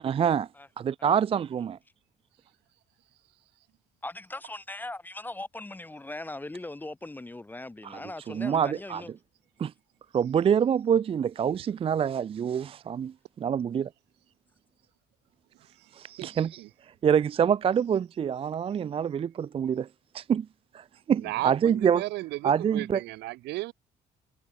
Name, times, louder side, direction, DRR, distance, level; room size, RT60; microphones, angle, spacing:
voice 1, 0.0-0.5 0.8-1.8 7.8-8.0 8.3-9.0 9.6-9.7 10.1-13.9 15.9-16.6 17.0-19.9 20.1-20.5 20.7-22.0 22.4-23.0, right 8 dB, 35° right, 0.5 m, -26 dB
voice 2, 4.0-9.1 21.2-21.4, left 2 dB, 10° left, 0.9 m, -40 dB
voice 3, 15.8-16.7 21.2-23.7, right 19 dB, 85° right, 1.9 m, -35 dB
cardioid pair, 110°, 17 cm